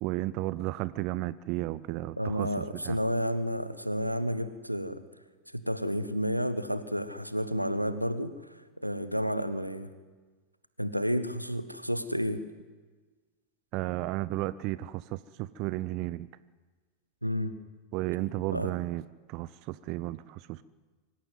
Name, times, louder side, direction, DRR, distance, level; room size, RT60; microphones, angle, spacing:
voice 1, 0.0-3.0 13.7-16.3 17.9-20.6, right 17 dB, 40° right, 17 dB, 0.6 m, -33 dB
voice 2, 2.2-5.0 5.5-9.9 10.8-12.4 17.2-17.5 18.5-18.7, equal, 90° right, 13 dB, 1.2 m, -31 dB
24.5 x 14.5 x 9.4 m, 1.4 s
figure-of-eight pair, 90°, 0 cm